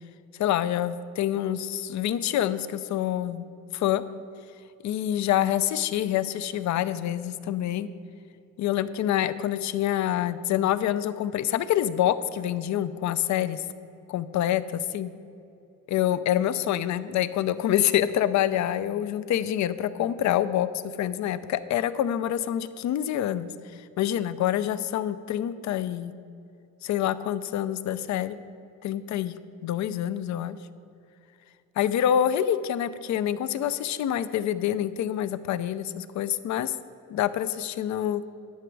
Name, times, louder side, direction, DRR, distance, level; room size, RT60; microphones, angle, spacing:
voice 1, 0.4-3.4 3.7-4.0 4.8-7.9 8.6-13.6 14.1-14.6 14.9-15.1 15.9-23.5 24.0-26.1 26.8-28.4 28.8-29.4 29.6-30.6 31.8-36.7 37.1-38.2, left 11 dB, 70° left, 14 dB, 0.5 m, -26 dB
11.0 x 6.0 x 4.7 m, 2.6 s
cardioid pair, 90°, 30 cm